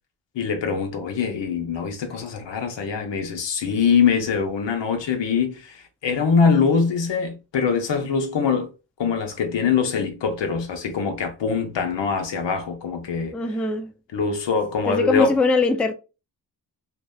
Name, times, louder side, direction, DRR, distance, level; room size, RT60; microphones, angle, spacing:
voice 1, 0.3-8.7 9.0-13.3 14.1-15.3, left 5 dB, 70° left, 0.8 m, -23 dB
voice 2, 13.3-13.9 14.9-15.9, left 3 dB, 5° left, 0.3 m, -21 dB
2.7 x 2.1 x 2.2 m
cardioid pair, 50°, 46 cm